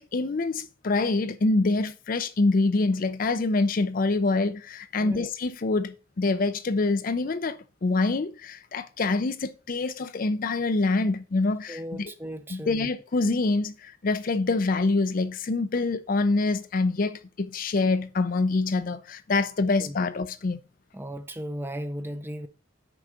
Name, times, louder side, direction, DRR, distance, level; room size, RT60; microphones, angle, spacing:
voice 1, 0.0-12.1 12.5-20.6, left 3 dB, 40° left, 0.4 m, -26 dB
voice 2, 5.0-5.3 11.7-12.9 19.8-19.9 20.9-22.5, equal, 10° right, 0.5 m, -36 dB
6.0 x 4.7 x 6.5 m
head